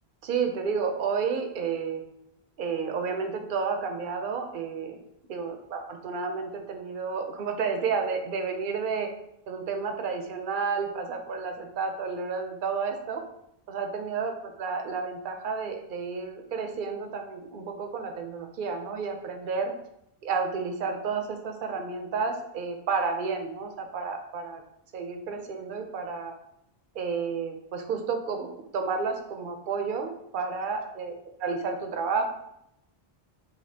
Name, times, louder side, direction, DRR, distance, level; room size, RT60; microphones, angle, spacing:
voice 1, 0.2-2.0 2.6-5.0 5.3-9.1 9.5-13.2 13.7-19.7 20.2-24.6 24.9-26.3 26.9-28.5 28.7-31.1 31.4-32.2, right 5 dB, 60° right, 4 dB, 0.7 m, -31 dB
5.0 x 2.7 x 2.7 m, 0.79 s
omnidirectional pair, 1.0 m